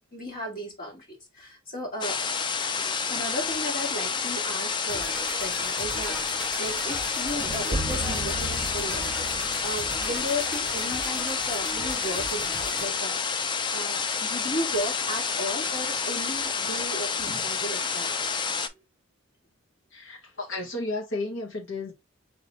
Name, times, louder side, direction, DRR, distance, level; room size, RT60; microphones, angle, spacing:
voice 1, 0.1-1.0 1.3-2.2 2.8-13.2 13.7-18.3, equal, 45° left, 1.5 m, -35 dB
sound 1, 2.0-18.7, left 5 dB, 25° left, 0.3 m, -29 dB
sound 2, 4.9-12.9, right 1 dB, 5° right, 1.1 m, -40 dB
sound 3, 7.3-11.4, right 1 dB, 35° right, 0.8 m, -35 dB
voice 2, 19.9-21.9, left 2 dB, 70° left, 1.5 m, -33 dB
3.9 x 3.2 x 3.2 m
head